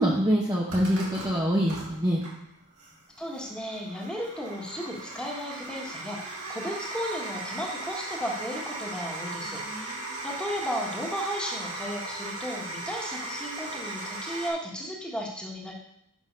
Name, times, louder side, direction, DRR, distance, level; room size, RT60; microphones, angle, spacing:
voice 1, 0.0-2.2 9.5-10.1, equal, 15° right, -3 dB, 0.9 m, -26 dB
sound 1, 0.7-14.5, right 2 dB, 75° right, 2.3 m, -38 dB
voice 2, 3.2-9.9 10.2-15.7, equal, 5° left, -2 dB, 1.5 m, -34 dB
6.2 x 6.0 x 5.3 m, 0.74 s
head